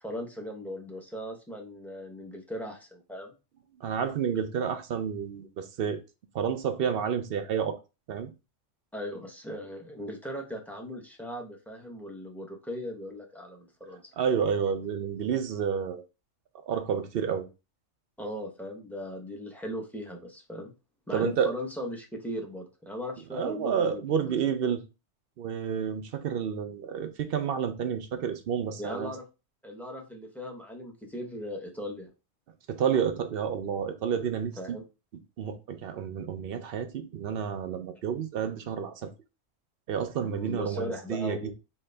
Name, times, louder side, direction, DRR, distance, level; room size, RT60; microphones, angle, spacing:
voice 1, 0.0-3.3 8.9-14.0 18.2-20.7 21.1-24.3 28.8-29.2 29.6-32.1 34.6-34.8 40.2-41.5, equal, ahead, 0.6 m, -38 dB
voice 2, 3.8-6.0 6.3-7.8 8.1-8.3 14.1-16.0 16.7-17.5 21.1-21.5 23.3-24.8 25.4-29.1 32.7-34.8 35.4-39.1 39.9-41.5, right 7 dB, 60° right, 0.6 m, -30 dB
3.8 x 2.6 x 3.2 m
omnidirectional pair, 1.3 m